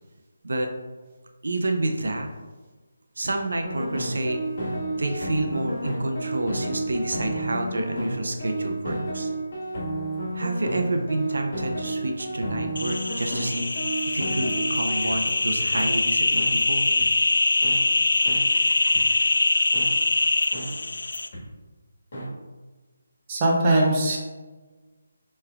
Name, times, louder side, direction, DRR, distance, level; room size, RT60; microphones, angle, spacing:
voice 1, 1.4-2.3 3.2-4.4 5.0-9.3 10.3-13.6 14.1-16.9, right 2 dB, 75° right, 4 dB, 0.6 m, -28 dB
sound 1, 3.6-15.2 15.7-15.9 16.4-16.5 17.0-17.1 17.6-17.8 18.3-18.4 18.9-19.0 19.7-19.9 20.5-20.7 21.3-21.4 22.1-22.3, right 1 dB, 45° left, 1.4 m, -31 dB
sound 2, 12.8-21.3, left 2 dB, 85° left, 0.3 m, -23 dB
voice 2, 23.3-24.2, right 1 dB, 20° right, -3 dB, 0.7 m, -20 dB
6.7 x 3.2 x 2.3 m, 1.3 s
hypercardioid pair, 175°, 0 cm